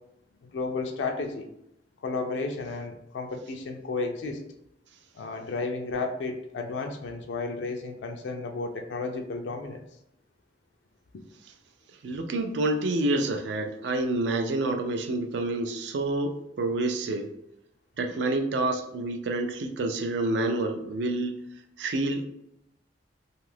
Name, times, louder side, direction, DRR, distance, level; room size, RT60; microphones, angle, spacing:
voice 1, 0.4-1.5 2.0-4.4 5.1-9.8, left 3 dB, 80° left, 4 dB, 0.4 m, -33 dB
voice 2, 12.0-17.3 18.0-21.4 21.8-22.2, right 2 dB, 70° right, 6 dB, 0.4 m, -28 dB
2.6 x 2.4 x 3.3 m, 0.80 s
head